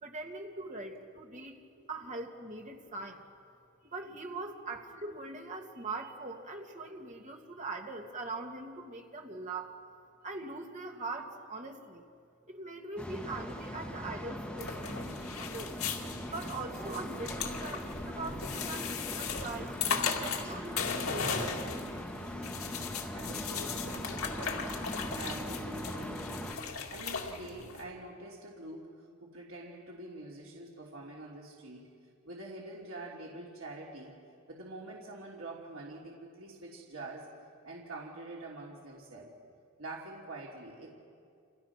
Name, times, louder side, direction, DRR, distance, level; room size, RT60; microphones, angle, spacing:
voice 1, 0.0-1.6 1.9-3.2 3.8-9.8 10.2-12.0 12.5-15.8 16.3-21.9, right 2 dB, 35° right, 2 dB, 2.4 m, -42 dB
sound 1, 13.0-26.5, equal, 5° left, 2.5 m, -40 dB
sound 2, 14.6-27.8, left 5 dB, 75° left, 2.3 m, -37 dB
voice 2, 22.9-31.9 32.2-34.2 34.5-37.3 37.6-39.3 39.8-40.9, right 2 dB, 65° right, -3 dB, 3.1 m, -46 dB
30.0 x 27.0 x 6.0 m, 2.3 s
head